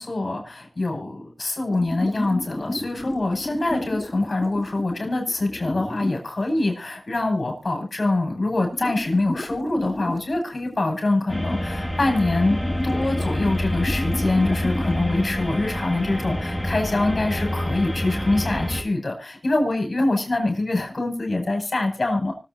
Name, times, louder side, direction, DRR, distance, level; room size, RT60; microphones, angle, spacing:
voice 1, 0.0-12.6 12.8-22.3, left 2 dB, 60° left, 3 dB, 5.9 m, -24 dB
sound 1, 1.7-6.2 8.3-8.4 8.6-10.8 11.1-11.2 11.6-11.7 12.3-15.0, left 1 dB, 35° left, 2.6 m, -32 dB
sound 2, 11.3-18.8, left 1 dB, 10° left, 2.2 m, -27 dB
24.5 x 8.3 x 2.7 m, 0.29 s
cardioid pair, 45°, 0 cm